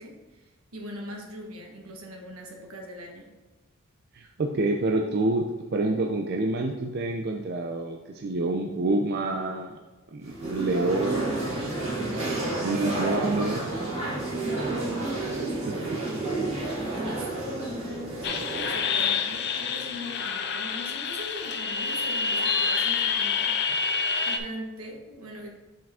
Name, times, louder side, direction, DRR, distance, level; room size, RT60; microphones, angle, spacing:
voice 1, 0.0-3.3 12.4-13.2 14.3-16.1 16.9-23.9 24.3-25.5, equal, 75° right, 1 dB, 1.3 m, -41 dB
voice 2, 4.1-5.5 5.7-9.8 10.1-11.8 12.6-13.6 15.6-15.8, right 2 dB, 45° right, 2 dB, 0.4 m, -27 dB
sound 1, 10.2-20.2, right 2 dB, 30° right, 1.7 m, -31 dB
sound 2, 18.2-24.4, left 5 dB, 50° left, 0.5 m, -27 dB
5.8 x 4.9 x 3.6 m, 1.2 s
head